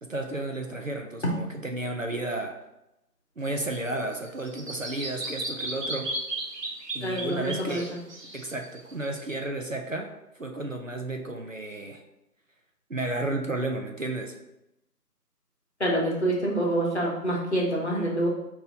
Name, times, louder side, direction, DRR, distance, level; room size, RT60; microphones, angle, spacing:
voice 1, 0.0-1.2 1.6-2.6 3.4-6.1 6.9-7.9 8.3-12.0 12.9-14.4, right 2 dB, 55° right, 3 dB, 0.5 m, -32 dB
Bird vocalization bird call bird song, 3.4-9.3, right 1 dB, 80° right, 1.1 m, -36 dB
voice 2, 7.0-8.0 15.8-18.3, right 1 dB, 45° left, -3 dB, 1.0 m, -26 dB
3.9 x 2.8 x 3.9 m, 0.87 s
figure-of-eight pair, 170°, 48 cm